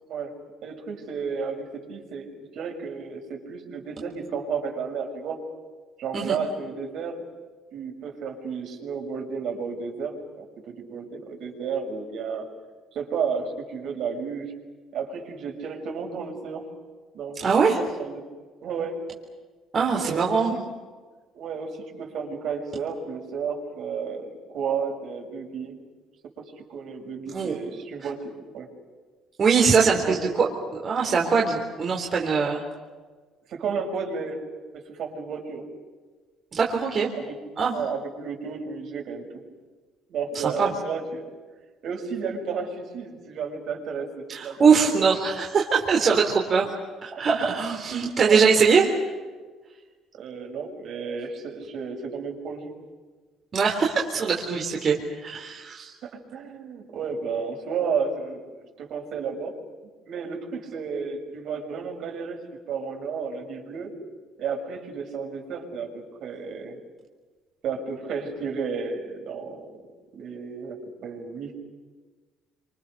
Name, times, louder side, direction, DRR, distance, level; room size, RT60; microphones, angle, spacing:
voice 1, 0.6-5.4 6.0-7.3 7.7-12.5 12.9-14.5 14.9-16.7 17.1-18.2 18.6-19.0 20.0-20.7 21.3-25.8 26.4-28.7 29.9-30.4 33.5-34.4 34.7-35.6 37.1-37.4 37.7-39.3 40.1-41.2 41.8-45.1 48.2-48.4 50.1-52.7 56.0-58.4 58.8-59.5 59.8-63.9 64.4-66.8 67.6-69.7 70.1-71.6, right 5 dB, 60° right, 1 dB, 6.6 m, -32 dB
voice 2, 17.4-17.8 19.7-20.5 27.3-27.6 29.4-30.5 30.8-32.6 36.5-37.1 37.6-37.8 40.4-40.7 44.3-46.7 47.0-48.9 53.5-55.9, right 5 dB, 35° right, 0 dB, 3.7 m, -22 dB
28.5 x 27.0 x 6.9 m, 1.4 s
cardioid pair, 130°, 0 cm